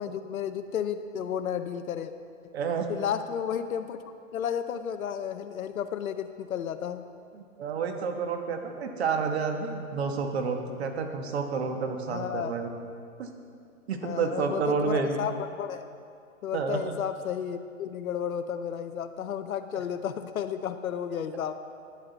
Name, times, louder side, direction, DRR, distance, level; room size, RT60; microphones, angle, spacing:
voice 1, 0.0-2.1 2.9-4.0 4.3-7.0 12.1-12.5 14.0-15.9 16.4-21.6, left 8 dB, 80° left, 8 dB, 0.7 m, -32 dB
voice 2, 2.5-2.9 7.3-12.7 13.2-13.3 13.9-15.2 16.5-16.9 19.7-19.8, right 5 dB, 50° right, 5 dB, 1.2 m, -30 dB
12.5 x 9.5 x 4.0 m, 2.4 s
hypercardioid pair, 160°, 41 cm